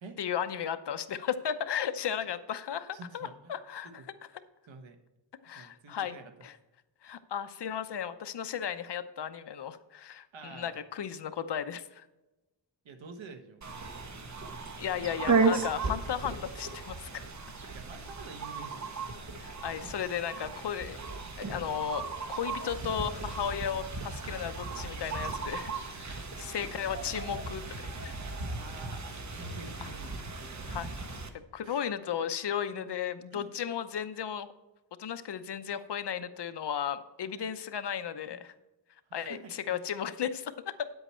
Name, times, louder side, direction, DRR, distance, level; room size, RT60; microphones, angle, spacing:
voice 1, 0.2-3.9 5.4-6.6 7.0-12.1 14.8-17.2 19.4-21.0 21.4-27.6 28.0-28.2 29.8-29.9 30.7-30.9 31.5-34.5 35.0-38.5 39.1-40.9, left 8 dB, 65° left, 11 dB, 0.8 m, -35 dB
voice 2, 2.9-3.5 3.8-4.0 4.7-5.0 5.5-6.3 10.3-10.8 12.8-13.6 17.7-18.9 28.4-30.1 31.6-31.8 33.3-33.5 37.4-37.5 39.1-39.8, right 4 dB, 80° right, 7 dB, 1.4 m, -48 dB
sound 1, 13.6-31.3, right 4 dB, 40° right, 1.2 m, -35 dB
9.9 x 8.0 x 4.4 m, 1.0 s
wide cardioid pair, 100°, 45 cm